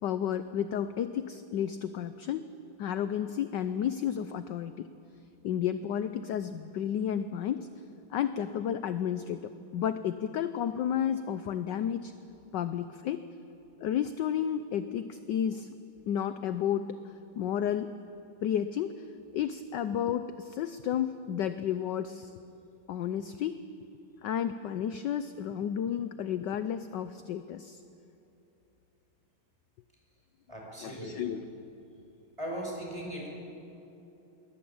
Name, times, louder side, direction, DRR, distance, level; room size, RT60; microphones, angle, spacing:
voice 1, 0.0-2.5 2.8-4.9 5.4-7.7 8.1-12.1 12.5-13.2 13.8-15.8 16.1-17.9 18.4-19.0 19.3-22.3 22.9-23.6 24.2-27.8 30.8-31.4, left 9 dB, 65° left, 11 dB, 1.2 m, -32 dB
voice 2, 30.5-31.3 32.4-33.3, right 1 dB, 15° right, -1 dB, 5.8 m, -38 dB
22.5 x 20.5 x 8.7 m, 2.9 s
omnidirectional pair, 2.3 m